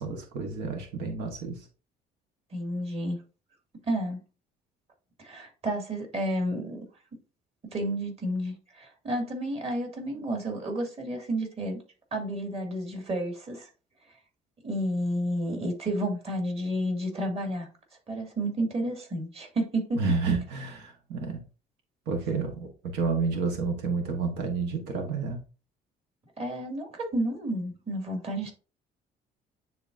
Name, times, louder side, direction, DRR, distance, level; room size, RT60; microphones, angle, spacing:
voice 1, 0.0-1.6 19.9-21.4 22.1-25.4, right 4 dB, 90° right, 4 dB, 1.3 m, -30 dB
voice 2, 2.5-3.2 3.8-4.2 5.2-6.8 7.7-11.8 12.1-13.7 14.6-17.7 18.1-20.0 26.4-28.5, right 1 dB, 35° right, 2 dB, 2.3 m, -31 dB
9.6 x 3.9 x 2.6 m, 0.34 s
cardioid pair, 110°, 17 cm